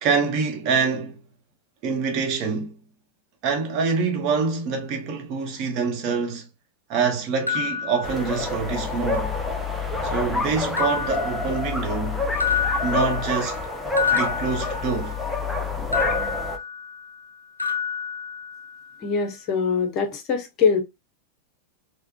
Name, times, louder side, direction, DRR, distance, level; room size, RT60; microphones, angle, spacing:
voice 1, 0.0-1.2 1.8-2.8 3.4-6.5 6.9-9.3 10.0-12.2 12.8-13.6 14.1-15.2, right 5 dB, 40° right, 0.9 m, -25 dB
sound 1, 7.5-8.7 9.1-9.9 10.8-12.0 12.4-15.3 15.9-17.3 17.6-18.9, left 7 dB, 85° left, 0.4 m, -29 dB
sound 2, 8.0-16.6, left 3 dB, ahead, 0.6 m, -28 dB
voice 2, 19.0-20.8, left 5 dB, 35° left, 0.7 m, -23 dB
3.5 x 2.2 x 2.2 m
figure-of-eight pair, 90°, 0 cm